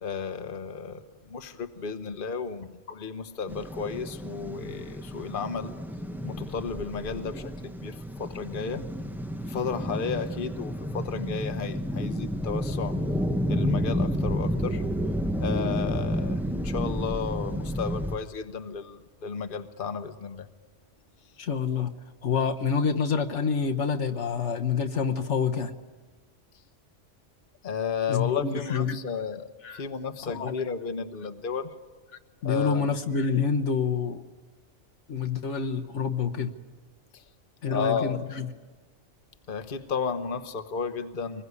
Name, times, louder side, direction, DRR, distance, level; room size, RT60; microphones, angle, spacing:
voice 1, 0.0-5.8 6.2-8.9 9.4-13.0 13.5-14.8 15.4-20.5 27.6-31.7 32.4-32.9 37.1-37.2 37.6-38.2 39.5-41.4, left 5 dB, 45° left, 8 dB, 1.2 m, -33 dB
sound 1, 3.5-18.2, equal, ahead, 0.7 m, -31 dB
voice 2, 21.4-21.9 22.2-25.7 28.1-29.0 29.6-29.8 30.2-30.5 32.4-34.2 35.1-36.5 37.6-38.5, left 6 dB, 70° left, 5 dB, 1.4 m, -27 dB
24.5 x 21.0 x 9.7 m, 1.3 s
omnidirectional pair, 1.3 m